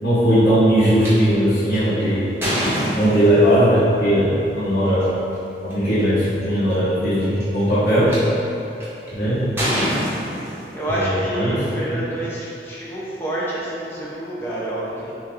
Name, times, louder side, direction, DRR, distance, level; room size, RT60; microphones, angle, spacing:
voice 1, 0.0-2.2 2.9-5.1 5.6-8.1 9.2-9.5 11.3-11.6, equal, 60° left, -15 dB, 1.2 m, -18 dB
sound 1, 1.0-1.1 1.7-3.6 4.9-5.0 5.7-5.8 6.0-6.4 7.2-8.2 8.8-9.1 9.6-11.0, equal, 15° right, 0.9 m, -25 dB
voice 2, 9.3-10.1 10.7-15.1, right 1 dB, 15° left, -8 dB, 0.8 m, -28 dB
6.2 x 2.8 x 2.6 m, 2.9 s
head